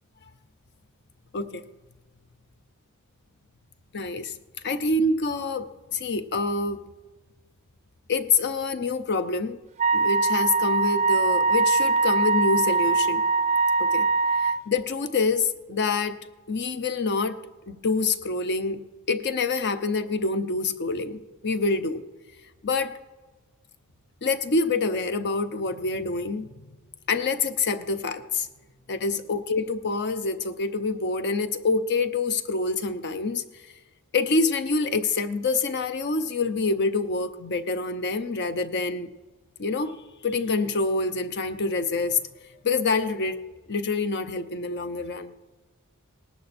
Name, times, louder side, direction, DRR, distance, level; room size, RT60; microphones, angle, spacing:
voice 1, 3.9-4.3 4.6-6.8 8.1-9.6 9.9-13.2 13.8-14.1 14.3-16.2 16.5-17.4 17.7-18.8 19.1-22.0 22.6-23.0 24.2-26.5 27.1-28.5 28.9-33.4 34.1-39.1 39.6-42.2 42.6-43.4 43.7-45.3, left 3 dB, 50° left, 11 dB, 0.7 m, -26 dB
Wind instrument woodwind instrument, 9.8-14.6, right 4 dB, 30° right, 0.5 m, -22 dB
18.5 x 11.0 x 4.3 m, 1.3 s
head